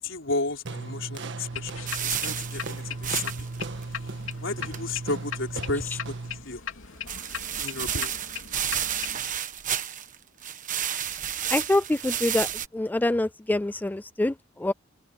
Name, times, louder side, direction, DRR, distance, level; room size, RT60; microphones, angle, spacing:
voice 1, 0.0-3.3 3.9-4.1 4.4-6.6 7.6-8.2, left 3 dB, 70° left, 4.5 m, -33 dB
sound 1, 0.6-6.4, right 3 dB, 65° right, 1.5 m, -36 dB
sound 2, 1.5-9.2, left 8 dB, 90° left, 2.8 m, -39 dB
sound 3, 1.9-3.6 3.8-3.9 4.3-4.4 4.7-4.8 7.1-10.2 10.4-12.7, right 9 dB, 40° right, 1.3 m, -31 dB
voice 2, 11.5-12.5 12.7-14.7, left 1 dB, 10° left, 0.3 m, -25 dB
head